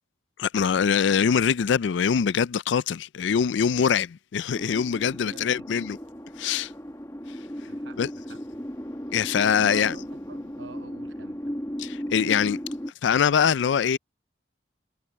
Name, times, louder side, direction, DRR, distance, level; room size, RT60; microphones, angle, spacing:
voice 1, 0.4-6.0 6.4-6.7 8.0-8.1 9.1-9.9 11.8-12.6 13.0-14.0, left 7 dB, 80° left, 0.4 m, -23 dB
sound 1, 4.5-12.9, equal, 15° left, 1.2 m, -36 dB
voice 2, 5.0-5.7 7.7-8.4 9.4-11.5, right 4 dB, 85° right, 1.0 m, -47 dB
head